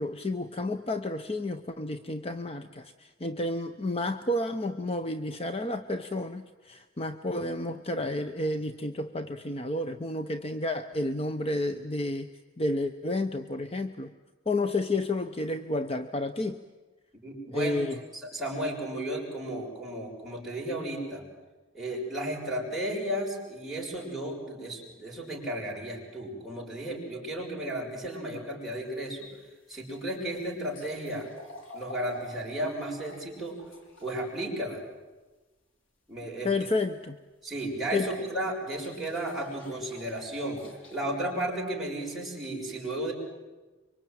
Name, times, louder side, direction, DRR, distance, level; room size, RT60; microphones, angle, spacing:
voice 1, 0.0-12.3 12.6-14.1 14.5-16.6 17.5-18.0 36.4-37.2 37.9-38.1, left 2 dB, 30° left, 9 dB, 0.9 m, -31 dB
voice 2, 17.2-17.8 18.1-21.2 21.7-29.3 29.7-31.3 31.7-33.6 34.0-34.8 36.1-36.5 37.4-40.6 40.9-43.1, right 1 dB, ahead, -4 dB, 6.5 m, -34 dB
sound 1, 28.9-34.5 37.6-37.7 38.7-41.0, left 1 dB, 90° left, 4.0 m, -48 dB
25.5 x 24.0 x 9.2 m, 1.2 s
head